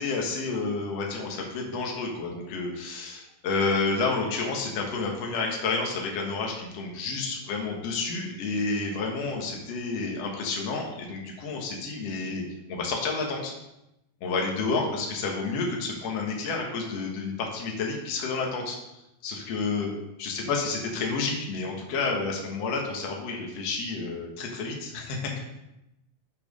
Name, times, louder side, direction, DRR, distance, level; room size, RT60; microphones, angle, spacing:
voice 1, 0.0-12.4 12.7-13.5 14.2-18.8 19.2-19.9 20.2-25.4, left 4 dB, 60° left, 0 dB, 2.4 m, -30 dB
8.9 x 5.8 x 5.3 m, 0.89 s
omnidirectional pair, 3.5 m